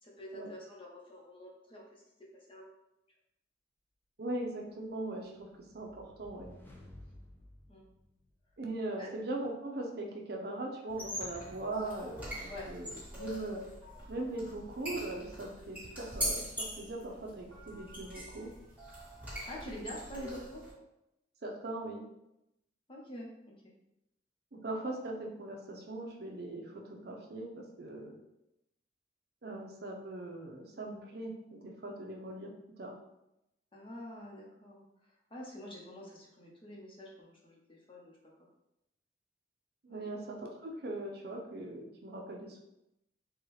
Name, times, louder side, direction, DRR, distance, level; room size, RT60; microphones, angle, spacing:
voice 1, 0.0-2.0 2.5-2.7 7.7-7.9 9.0-9.1 12.5-12.7 19.2-20.6 22.9-23.7 33.7-38.2 39.9-40.0, equal, 30° left, -3 dB, 0.9 m, -47 dB
voice 2, 4.2-5.5 5.7-6.6 8.6-13.7 14.1-18.5 21.4-22.1 24.5-28.2 29.4-32.5 32.8-33.0 39.8-42.6, right 2 dB, 60° right, 1 dB, 0.6 m, -40 dB
sound 1, 4.9-8.7, left 1 dB, 10° left, 0.5 m, -55 dB
sound 2, 10.9-20.7, equal, 10° right, 1.5 m, -42 dB
4.4 x 2.3 x 3.2 m, 0.86 s
head